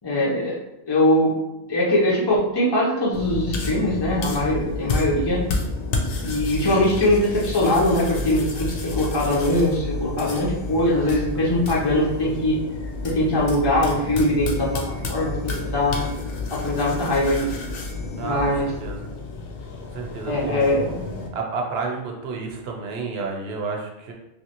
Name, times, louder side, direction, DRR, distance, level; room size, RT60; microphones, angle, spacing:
voice 1, 0.0-0.6 0.8-1.3 1.7-5.4 6.2-12.6 13.0-14.8 15.1-16.1 16.5-17.5 18.2-18.7 20.3-21.0, left 1 dB, 35° left, -5 dB, 0.5 m, -21 dB
sound 1, 3.1-21.3, left 3 dB, 65° left, 0.8 m, -30 dB
voice 2, 4.5-4.8 10.9-11.2 18.2-18.4 18.8-19.1 19.9-20.9 21.3-24.1, right 4 dB, 70° right, 1 dB, 0.8 m, -31 dB
3.1 x 2.6 x 2.8 m, 0.94 s
omnidirectional pair, 1.1 m